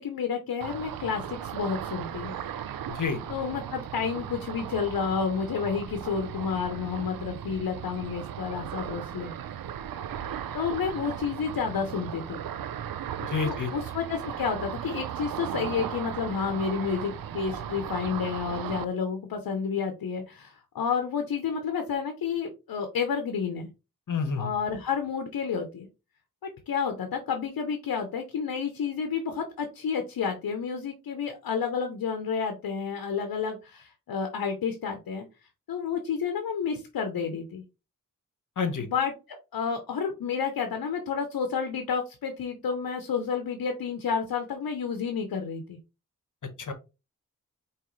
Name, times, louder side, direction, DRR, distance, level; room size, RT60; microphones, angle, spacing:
voice 1, 0.0-2.3 3.3-9.3 10.5-12.4 13.4-23.7 24.4-25.9 26.7-35.3 35.7-37.6 38.8-45.8, left 6 dB, 90° left, 6 dB, 0.8 m, -30 dB
Ocean, 0.6-18.9, right 9 dB, 80° right, 0.5 m, -37 dB
voice 2, 2.9-3.2 13.3-13.7 24.1-24.5 38.6-38.9 46.6-46.7, left 5 dB, 60° left, 9 dB, 1.1 m, -28 dB
4.8 x 3.1 x 3.1 m, 0.27 s
cardioid pair, 45°, 34 cm